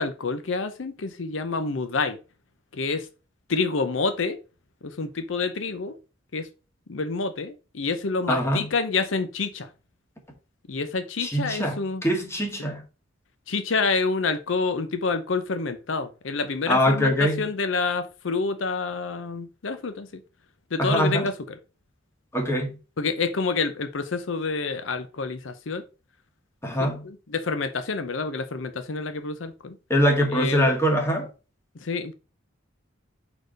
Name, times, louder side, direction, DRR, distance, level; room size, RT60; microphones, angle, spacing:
voice 1, 0.0-2.2 2.7-3.1 3.5-4.4 4.8-6.0 6.3-6.5 6.9-9.7 10.7-12.0 13.5-20.1 20.7-21.3 23.0-25.8 26.8-29.8 30.3-30.7 31.8-32.1, left 4 dB, 75° left, 0.7 m, -28 dB
voice 2, 8.3-8.7 11.2-12.8 16.7-17.4 20.8-21.3 22.3-22.8 26.6-27.1 29.9-31.3, equal, 15° left, 1.8 m, -23 dB
4.8 x 4.4 x 5.1 m
head